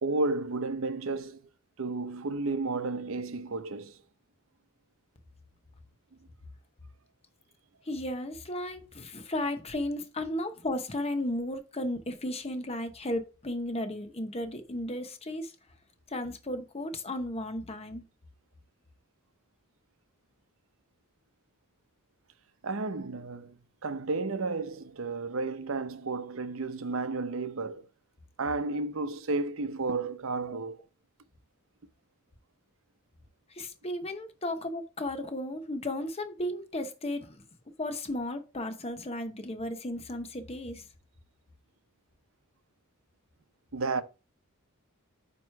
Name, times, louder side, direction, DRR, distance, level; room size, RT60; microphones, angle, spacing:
voice 1, 0.0-1.4 1.8-4.0 22.6-23.6 23.8-27.9 28.4-30.8 43.7-44.0, right 3 dB, 65° right, 0.7 m, -32 dB
voice 2, 7.9-15.5 16.1-18.0 30.5-30.6 33.5-37.4 37.8-40.8, left 1 dB, 30° left, 0.9 m, -34 dB
9.2 x 3.1 x 4.6 m
head